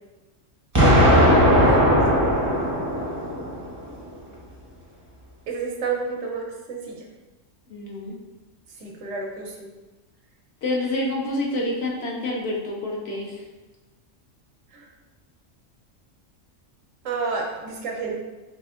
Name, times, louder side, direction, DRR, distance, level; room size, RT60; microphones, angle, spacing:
Explosion, 0.7-3.7, equal, 20° right, 0.5 m, -18 dB
voice 1, 0.8-2.3 5.5-7.1 8.8-9.7 14.7-14.9 17.0-18.2, right 4 dB, 80° right, 1 dB, 1.0 m, -31 dB
voice 2, 7.7-8.1 10.6-13.4, left 1 dB, 60° left, -2 dB, 0.8 m, -28 dB
4.1 x 2.7 x 2.4 m, 1.2 s
omnidirectional pair, 1.3 m